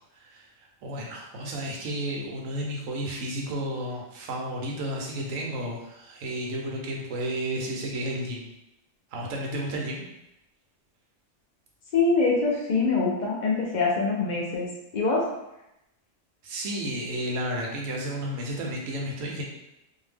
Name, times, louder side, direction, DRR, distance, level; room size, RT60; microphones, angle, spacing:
voice 1, 0.1-8.5 9.1-10.0 16.4-19.4, right 1 dB, 90° right, -1 dB, 1.1 m, -32 dB
voice 2, 11.9-14.7 14.9-15.3, left 3 dB, 55° left, -3 dB, 0.5 m, -24 dB
2.7 x 2.1 x 3.3 m, 0.88 s
omnidirectional pair, 1.3 m